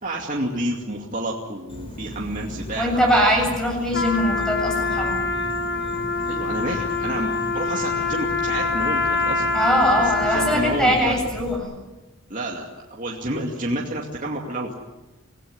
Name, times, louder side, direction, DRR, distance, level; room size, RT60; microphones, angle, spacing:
voice 1, 0.0-3.2 6.3-9.5 10.0-11.2 12.3-14.8, right 1 dB, 35° right, -2 dB, 2.5 m, -29 dB
Insect, 1.7-11.6, left 1 dB, 25° left, 4.6 m, -36 dB
voice 2, 2.7-5.2 9.5-11.6, equal, 5° left, 1 dB, 7.6 m, -21 dB
Trumpet, 3.9-10.9, left 3 dB, 55° left, 3.7 m, -25 dB
26.0 x 17.0 x 9.7 m, 1.1 s
head